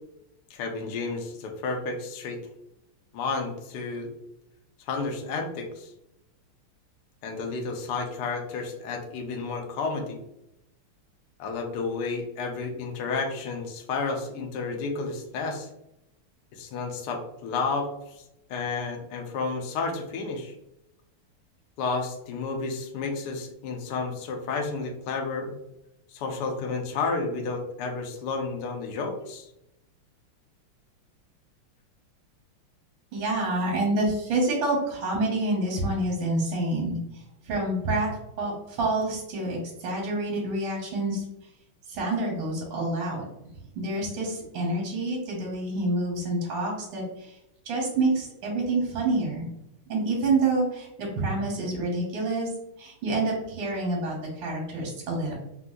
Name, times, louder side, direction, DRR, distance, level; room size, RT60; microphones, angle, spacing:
voice 1, 0.5-2.4 3.1-4.1 4.9-5.9 7.2-10.2 11.4-15.7 16.5-17.9 18.5-20.5 21.8-25.6 26.1-29.5, left 4 dB, 75° left, 3 dB, 1.0 m, -31 dB
voice 2, 33.1-38.1 38.4-41.2 41.9-43.2 43.7-47.4 47.6-49.5 49.9-52.5 52.8-55.3, right 2 dB, 70° right, -3 dB, 1.5 m, -27 dB
3.5 x 2.6 x 2.2 m, 0.86 s
omnidirectional pair, 2.4 m